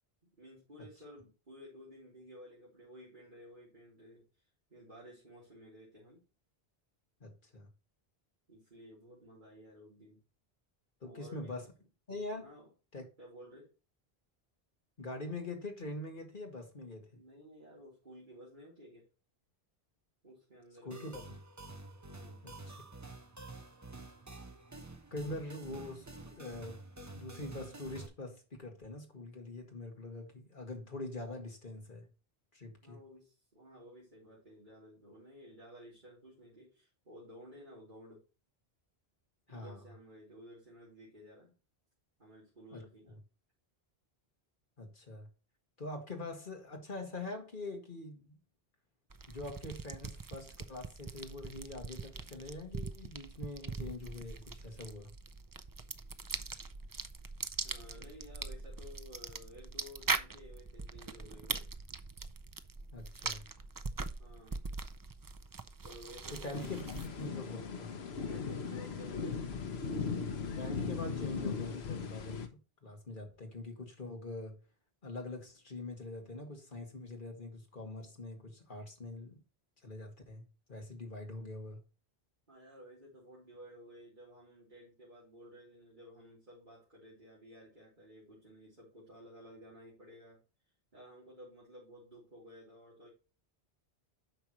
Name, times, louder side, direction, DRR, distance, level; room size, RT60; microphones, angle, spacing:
voice 1, 0.2-4.3 4.7-6.2 8.5-10.2 11.0-11.7 12.4-12.7 13.2-13.7 17.1-19.1 20.2-21.2 22.1-22.5 32.8-38.2 39.5-41.5 42.2-43.2 57.6-61.7 64.2-64.6 65.8-66.8 68.3-69.5 82.5-90.4 90.9-93.1, equal, 50° right, 3.5 m, -54 dB
voice 2, 7.2-7.7 11.0-11.7 12.1-12.5 12.9-13.1 15.0-17.1 20.9-21.3 22.4-22.8 25.1-26.8 27.1-32.1 32.5-33.0 39.5-39.8 42.7-42.8 44.8-45.3 45.8-48.4 49.3-55.1 62.9-63.5 66.3-67.9 70.6-72.5 72.8-74.6 75.0-79.4 79.8-81.8, left 2 dB, 55° left, 2.1 m, -44 dB
sound 1, 20.9-28.1, right 2 dB, 20° right, 0.8 m, -49 dB
sound 2, 49.1-67.3, right 4 dB, 35° right, 0.3 m, -42 dB
sound 3, 66.5-72.5, left 5 dB, 75° left, 1.2 m, -38 dB
9.0 x 5.9 x 3.0 m
omnidirectional pair, 1.1 m